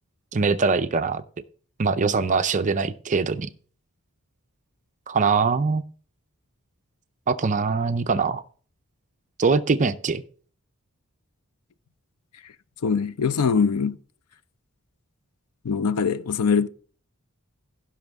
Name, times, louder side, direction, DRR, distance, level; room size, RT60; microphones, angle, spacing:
voice 1, 0.3-1.2 1.8-3.5 5.1-5.8 7.3-8.4 9.4-10.2, right 4 dB, 35° right, 0.5 m, -22 dB
voice 2, 12.8-14.0 15.6-16.7, left 6 dB, 80° left, 0.5 m, -22 dB
16.0 x 6.1 x 3.5 m
head